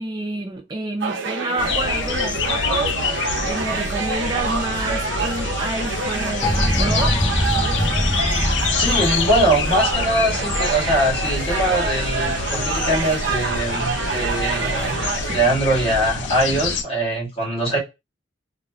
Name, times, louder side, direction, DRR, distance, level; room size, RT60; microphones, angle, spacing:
voice 1, 0.0-2.9 3.4-7.2 15.3-15.4, right 2 dB, 25° right, 0.4 m, -28 dB
sound 1, 1.0-15.4, right 4 dB, 85° right, 0.5 m, -27 dB
sound 2, 1.6-16.8, left 5 dB, 75° left, 0.4 m, -27 dB
sound 3, 6.4-12.1, equal, 10° left, 0.9 m, -24 dB
voice 2, 8.8-17.8, right 1 dB, 35° left, 1.6 m, -22 dB
3.0 x 2.0 x 2.3 m
head